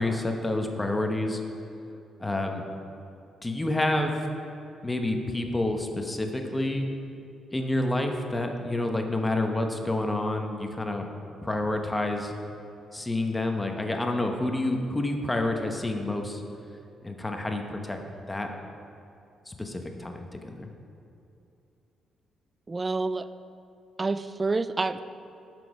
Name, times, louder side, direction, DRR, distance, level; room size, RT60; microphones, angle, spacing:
voice 1, 0.0-1.4 2.2-2.6 3.4-4.2 4.8-6.9 7.5-11.1 11.4-12.3 12.9-16.4 17.0-18.0 18.3-18.5 19.5-20.7, left 2 dB, 15° left, 4 dB, 0.8 m, -28 dB
voice 2, 22.7-23.3 24.0-25.0, right 3 dB, 20° right, 13 dB, 0.3 m, -28 dB
11.5 x 6.1 x 4.9 m, 2.7 s
cardioid pair, 125°, 0 cm